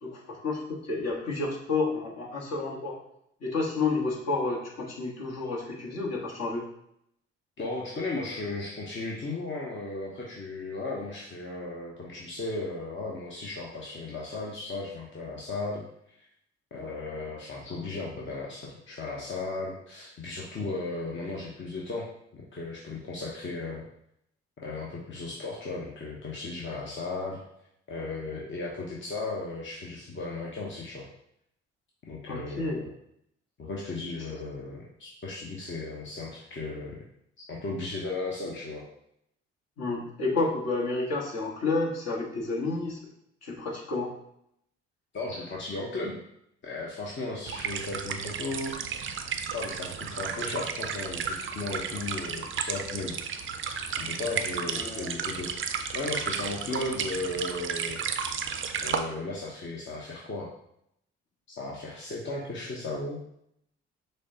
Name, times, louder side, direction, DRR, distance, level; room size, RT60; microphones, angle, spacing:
voice 1, 0.0-3.0 3.4-6.6 32.3-32.9 39.8-43.0 43.4-44.1 54.7-55.1, left 3 dB, 55° left, -3 dB, 1.3 m, -30 dB
voice 2, 7.6-16.3 16.7-23.8 24.6-27.4 27.9-31.1 32.1-32.9 33.6-37.0 37.5-38.8 45.1-46.2 46.6-48.7 49.5-53.2 54.0-58.0 58.8-60.5 61.5-63.2, left 3 dB, 40° left, -3 dB, 0.9 m, -35 dB
sound 1, 47.5-59.0, right 7 dB, 40° right, 0.5 m, -33 dB
6.3 x 2.2 x 2.8 m, 0.74 s
hypercardioid pair, 50°, 30 cm